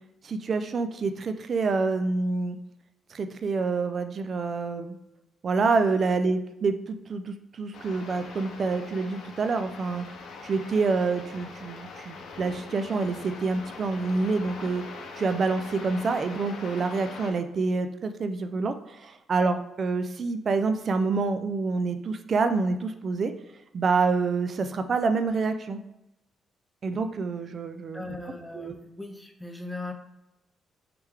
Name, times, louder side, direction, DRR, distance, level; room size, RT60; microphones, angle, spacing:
voice 1, 0.2-2.6 3.1-5.0 5.4-10.0 10.4-14.8 15.1-23.3 23.7-25.8 26.8-28.2 28.5-28.8, right 4 dB, 45° right, 9 dB, 0.3 m, -27 dB
sound 1, 7.7-17.3, left 4 dB, 70° left, 0.6 m, -42 dB
voice 2, 27.9-29.9, left 2 dB, 5° left, 4 dB, 0.5 m, -38 dB
3.4 x 3.2 x 3.2 m, 0.90 s
cardioid pair, 90°, 0 cm